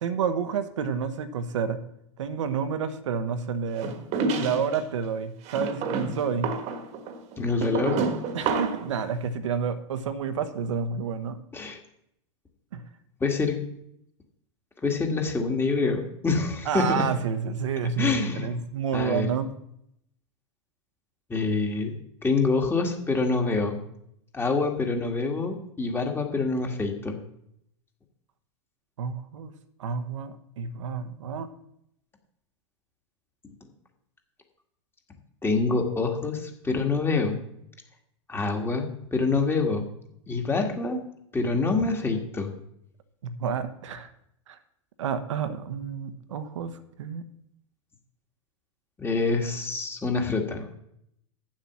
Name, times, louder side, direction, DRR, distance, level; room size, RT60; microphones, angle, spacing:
voice 1, 0.0-1.8 2.2-4.0 4.4-6.5 8.3-11.4 12.7-12.9 16.7-19.5 29.0-29.5 29.8-31.5 43.4-44.1 44.5-44.6 45.0-46.7 47.0-47.2, right 6 dB, 75° right, 10 dB, 1.1 m, -29 dB
sound 1, 3.8-4.8 5.5-8.9, right 4 dB, 45° right, 1.5 m, -29 dB
voice 2, 7.4-8.0 11.5-11.8 13.2-13.6 14.8-17.0 18.0-18.6 18.9-19.4 21.3-22.0 22.2-23.8 24.3-27.2 33.4-33.5 35.4-37.4 38.3-39.9 40.3-41.0 41.3-42.5 49.0-50.7, left 4 dB, 15° left, 3 dB, 1.9 m, -26 dB
9.1 x 7.4 x 6.1 m, 0.73 s
hypercardioid pair, 105°, 16 cm